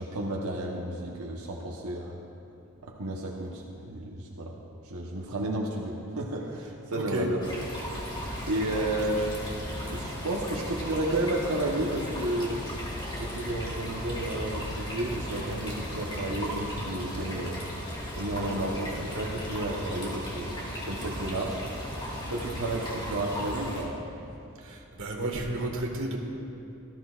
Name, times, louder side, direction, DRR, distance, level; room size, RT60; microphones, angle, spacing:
voice 1, 0.0-2.2 2.8-4.5 4.8-7.4 8.5-9.3 9.6-12.6 13.2-17.7 18.2-21.6 22.3-23.9, right 1 dB, 85° right, -3 dB, 1.1 m, -32 dB
voice 2, 6.9-7.3 8.3-8.5 24.6-26.2, right 2 dB, 65° right, 1 dB, 1.6 m, -32 dB
sound 1, 7.4-23.8, equal, 20° left, 2.5 m, -36 dB
18.5 x 13.0 x 2.4 m, 2.8 s
head